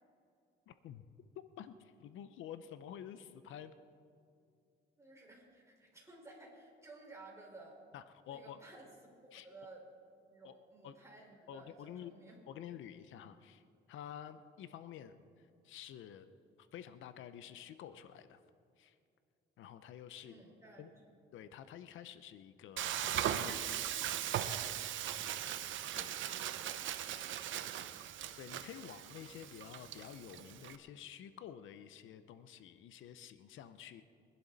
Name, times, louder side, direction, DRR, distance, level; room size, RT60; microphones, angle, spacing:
voice 1, 0.7-1.0 1.4-3.7 7.9-8.6 9.3-9.5 10.4-10.5 10.8-10.9 11.5-12.1 12.5-13.6 13.9-15.3 15.6-16.3 16.7-18.4 18.8-19.0 19.6-20.4 20.8-20.9 21.3-23.9 26.0-26.2 28.4-34.0, left 10 dB, 80° left, 12 dB, 0.7 m, -50 dB
voice 2, 5.0-7.8 8.2-9.9 10.2-12.4 20.2-21.0 26.7-28.3, right 2 dB, 15° right, -2 dB, 4.8 m, -56 dB
Frying (food), 22.8-30.8, right 11 dB, 75° right, 0.8 m, -39 dB
24.0 x 11.5 x 4.1 m, 2.5 s
cardioid pair, 90°, 20 cm